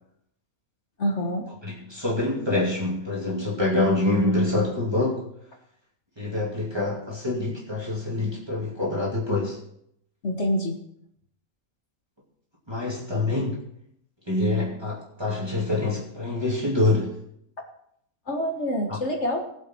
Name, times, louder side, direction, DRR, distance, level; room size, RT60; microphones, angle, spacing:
voice 1, 1.0-1.5 10.2-10.8 18.3-19.5, equal, 50° left, 3 dB, 1.7 m, -26 dB
voice 2, 1.6-5.2 6.2-9.6 12.7-13.6 14.3-17.1, left 2 dB, 15° right, -4 dB, 2.8 m, -25 dB
19.0 x 7.7 x 4.6 m, 0.73 s
omnidirectional pair, 1.5 m